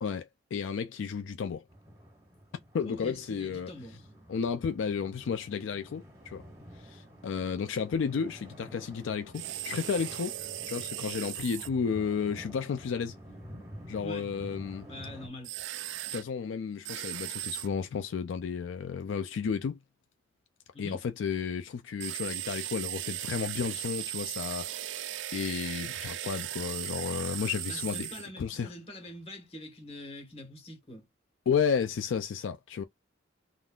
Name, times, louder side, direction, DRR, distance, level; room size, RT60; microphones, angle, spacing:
voice 1, 0.0-1.6 2.7-3.7 4.3-6.4 6.8-10.3 10.7-13.1 13.9-14.9 16.1-19.8 20.8-28.1 28.4-28.7 31.5-32.8, left 6 dB, 75° left, 0.3 m, -32 dB
sound 1, 1.7-15.3, equal, 15° right, 1.6 m, -50 dB
voice 2, 2.8-4.0 14.0-14.3 14.9-15.5 20.7-21.0 27.6-31.0, left 1 dB, 30° left, 1.3 m, -44 dB
sound 2, 9.3-11.7 15.4-16.2 16.8-17.7 22.0-28.3, right 14 dB, 70° right, 0.3 m, -37 dB
3.6 x 2.4 x 2.3 m
head